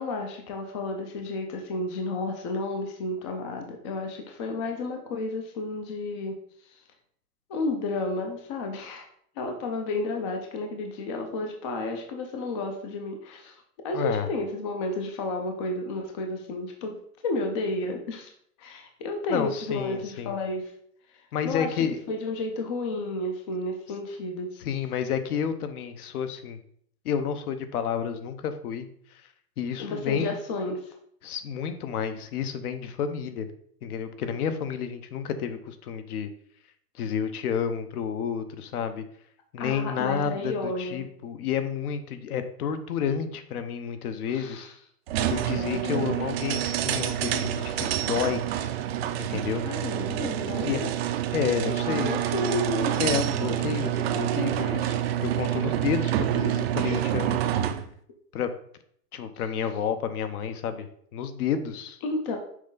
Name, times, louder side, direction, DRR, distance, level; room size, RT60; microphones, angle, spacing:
voice 1, 0.0-6.4 6.7-6.8 7.5-9.1 9.4-17.0 17.2-18.3 18.6-20.7 21.1-24.5 29.8-30.9 39.6-41.1 44.3-44.7 45.5-46.1 49.6-50.9 51.6-53.2 62.0-62.4, left 2 dB, 20° left, 3 dB, 0.4 m, -32 dB
voice 2, 13.9-14.3 19.3-20.3 21.3-22.0 24.6-26.6 27.0-28.9 29.6-30.3 31.2-33.5 33.8-36.3 37.0-39.0 39.5-44.7 45.3-48.4 49.2-49.6 50.6-50.8 51.3-52.2 53.0-55.0 55.2-57.4 58.3-58.5 59.1-60.9 61.1-62.0, left 7 dB, 65° left, 9 dB, 1.0 m, -30 dB
sound 1, 45.1-57.9, right 11 dB, 40° right, 0.5 m, -27 dB
6.3 x 4.3 x 3.9 m, 0.64 s
hypercardioid pair, 140°, 48 cm